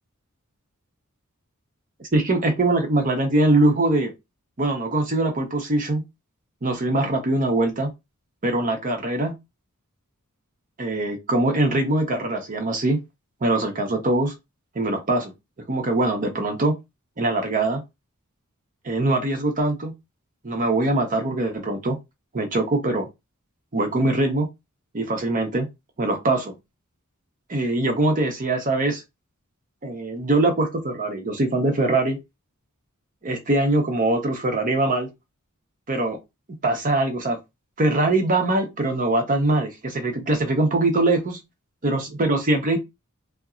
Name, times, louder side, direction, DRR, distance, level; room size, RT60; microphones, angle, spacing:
voice 1, 2.1-4.1 4.6-6.0 6.6-7.9 8.4-9.3 10.8-13.0 13.4-14.3 14.7-15.3 15.7-16.7 17.2-17.8 18.8-19.9 20.4-22.0 22.3-23.1 23.7-24.5 24.9-25.7 26.0-26.6 27.5-29.0 29.8-32.2 33.2-35.1 35.9-36.2 36.6-37.4 37.8-41.4 41.8-42.8, right 2 dB, 40° right, 0.7 m, -22 dB
2.7 x 2.2 x 2.4 m
head